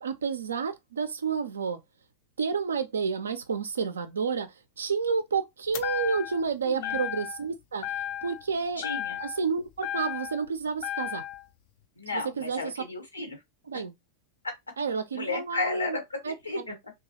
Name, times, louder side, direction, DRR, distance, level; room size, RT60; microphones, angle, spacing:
voice 1, 0.0-1.8 2.4-7.9 8.2-8.9 9.2-11.2 12.4-12.6 13.7-13.9 14.8-16.3, right 5 dB, 70° right, 0.5 m, -30 dB
sound 1, 5.7-6.5 6.8-7.5 7.8-8.5 8.8-10.5 10.8-11.4, left 11 dB, 45° left, 0.3 m, -34 dB
voice 2, 6.6-7.0 8.8-9.2 12.0-13.4 13.7-13.8 14.4-14.5 15.1-16.9, left 3 dB, 80° left, 1.1 m, -34 dB
3.0 x 2.3 x 2.7 m
figure-of-eight pair, 90°, 0 cm